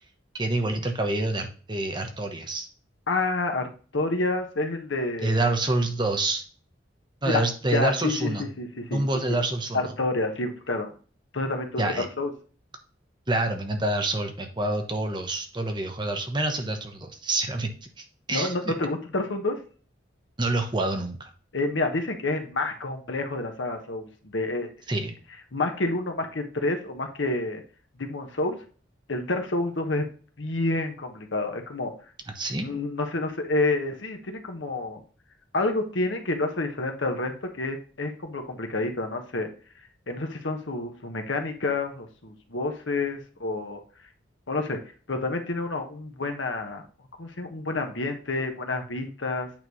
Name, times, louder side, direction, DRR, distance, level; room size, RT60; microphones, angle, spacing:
voice 1, 0.3-2.7 5.2-6.4 7.2-8.4 8.9-9.8 11.8-12.1 13.3-17.7 18.0-18.7 20.4-21.3 24.9-25.1 32.3-32.7, right 2 dB, 25° right, 6 dB, 0.9 m, -27 dB
voice 2, 3.1-3.7 3.9-5.4 7.2-7.4 7.7-9.4 9.7-10.9 11.3-12.3 18.3-19.6 21.5-24.7 25.5-27.6 28.0-28.6 29.1-30.1 30.4-31.9 32.6-35.0 35.5-39.5 40.1-43.8 44.5-44.8 45.1-46.9 47.2-49.5, left 2 dB, 75° left, 5 dB, 1.2 m, -29 dB
8.9 x 3.2 x 5.4 m, 0.40 s
head